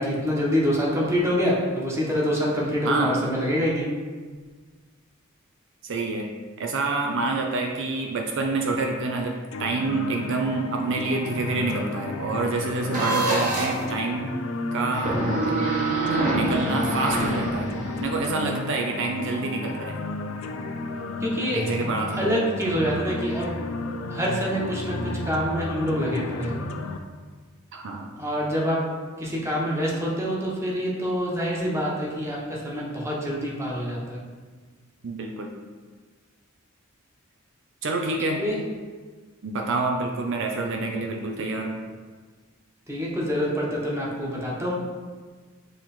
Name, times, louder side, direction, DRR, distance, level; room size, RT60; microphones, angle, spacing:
voice 1, 0.0-3.9 21.2-21.7 22.2-23.6 24.1-26.5 28.2-28.8 29.2-34.2 38.2-38.6 42.9-44.7, equal, 15° right, -4 dB, 1.1 m, -26 dB
voice 2, 2.8-3.2 5.8-6.3 6.6-14.4 14.7-15.2 16.3-17.7 18.0-20.0 21.5-22.4 27.7-28.1 35.0-35.5 37.8-38.4 39.4-41.8, right 3 dB, 60° right, 2 dB, 0.5 m, -27 dB
sound 1, 9.5-27.0, left 2 dB, 75° left, 0.5 m, -33 dB
sound 2, 12.9-13.8 14.9-18.0, right 2 dB, 40° right, 1.3 m, -25 dB
7.8 x 3.1 x 4.3 m, 1.5 s
head